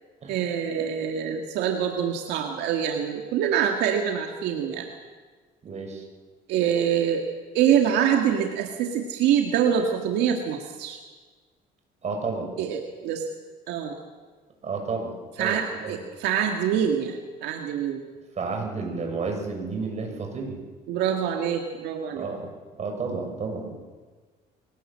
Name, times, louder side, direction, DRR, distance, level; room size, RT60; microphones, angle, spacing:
voice 1, 0.3-4.9 6.5-7.2 7.5-11.0 12.6-13.2 13.7-14.0 15.4-18.0 20.9-22.3, right 8 dB, 90° right, 3 dB, 2.0 m, -25 dB
voice 2, 5.6-6.0 12.0-12.5 14.6-16.0 18.4-20.6 22.1-22.5 22.8-23.8, right 4 dB, 40° right, 2 dB, 6.5 m, -31 dB
23.5 x 18.5 x 7.6 m, 1.4 s
cardioid pair, 110°, 17 cm